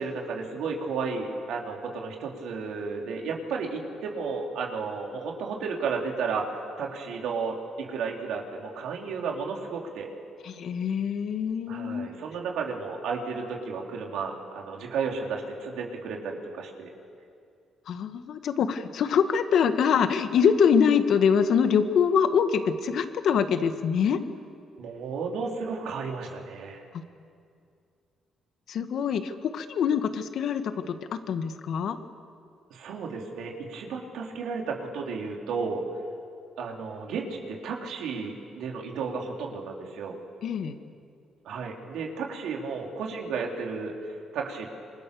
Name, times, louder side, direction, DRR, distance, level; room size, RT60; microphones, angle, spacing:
voice 1, 0.0-6.5 6.8-10.1 11.7-16.9 24.8-26.8 32.7-35.8 36.6-40.2 41.5-44.7, right 5 dB, 85° right, 0 dB, 3.8 m, -33 dB
voice 2, 10.4-12.1 17.9-24.2 26.9-27.0 28.7-32.0 40.4-40.7, left 7 dB, 70° left, 8 dB, 1.7 m, -24 dB
27.0 x 24.0 x 7.0 m, 2.3 s
cardioid pair, 90°, 0 cm